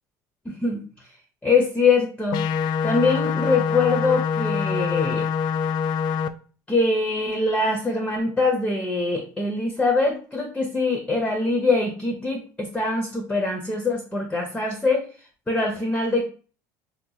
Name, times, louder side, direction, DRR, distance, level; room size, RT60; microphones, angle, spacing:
voice 1, 0.5-0.8 1.4-2.4 2.8-5.3 6.7-15.0 15.5-16.2, left 3 dB, 10° left, 3 dB, 0.6 m, -23 dB
sound 1, 2.3-6.3, left 7 dB, 50° left, 0.3 m, -25 dB
2.8 x 2.1 x 3.8 m, 0.39 s
supercardioid pair, 110°, 9 cm